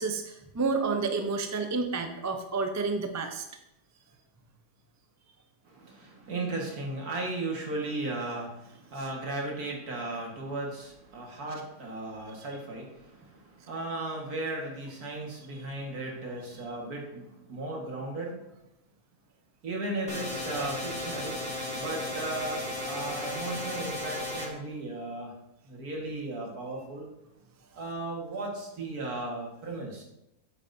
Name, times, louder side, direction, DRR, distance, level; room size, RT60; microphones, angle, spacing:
voice 1, 0.0-3.4, right 4 dB, 30° right, 5 dB, 0.3 m, -30 dB
voice 2, 5.7-18.4 19.6-21.4 21.8-25.3 25.6-27.1 27.8-30.0, right 2 dB, 70° right, -1 dB, 2.3 m, -36 dB
sound 1, 20.1-24.5, left 1 dB, 5° left, 2.0 m, -35 dB
8.8 x 8.7 x 2.7 m, 0.85 s
omnidirectional pair, 1.6 m